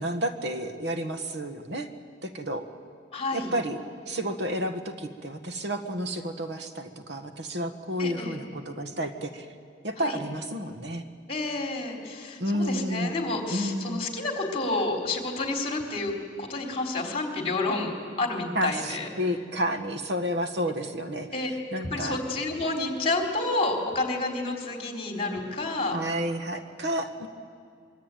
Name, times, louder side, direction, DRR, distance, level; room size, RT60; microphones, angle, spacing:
voice 1, 0.0-1.9 2.2-2.7 3.3-3.8 4.1-9.5 9.8-11.0 12.4-13.1 13.5-14.0 18.5-21.3 21.7-22.2 25.9-27.3, equal, 65° right, 7 dB, 1.5 m, -31 dB
voice 2, 3.1-3.5 8.0-8.4 10.0-10.2 11.3-16.1 16.4-19.1 21.3-21.5 21.8-26.0, left 2 dB, 30° left, 1 dB, 3.8 m, -29 dB
24.5 x 23.5 x 9.2 m, 2.2 s
head